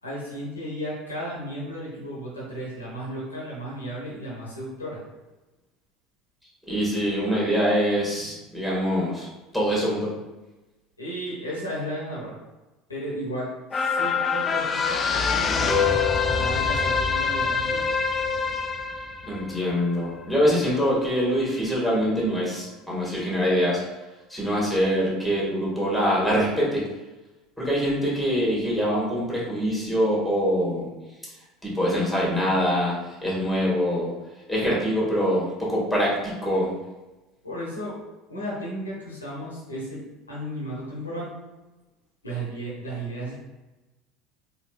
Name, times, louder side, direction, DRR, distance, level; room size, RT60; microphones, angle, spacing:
voice 1, 0.0-5.0 11.0-12.4 12.9-16.0 16.3-17.8 37.4-38.0 38.3-41.3 42.2-43.4, equal, 90° left, -5 dB, 1.0 m, -34 dB
voice 2, 6.7-9.3 9.5-10.1 19.3-23.8 24.3-26.8 27.6-30.9 31.6-34.1 34.5-36.7, equal, ahead, -5 dB, 1.5 m, -24 dB
sound 1, 13.7-20.4 20.8-20.9, left 5 dB, 25° left, 0.4 m, -25 dB
4.1 x 2.6 x 2.3 m, 1.1 s
figure-of-eight pair, 70°, 0 cm